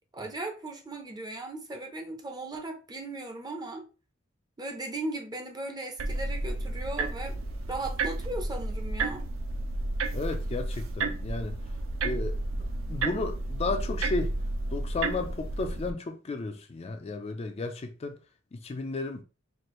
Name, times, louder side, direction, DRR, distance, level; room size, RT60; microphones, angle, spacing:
voice 1, 0.1-3.9 4.6-7.4 7.7-9.3, right 2 dB, 20° right, 0.6 m, -37 dB
sound 1, 6.0-15.9, right 2 dB, 75° right, 0.5 m, -32 dB
voice 2, 10.1-11.5 12.0-12.4 12.9-14.3 14.7-18.2 18.5-19.2, left 3 dB, 30° left, 0.4 m, -33 dB
4.5 x 2.5 x 3.0 m
head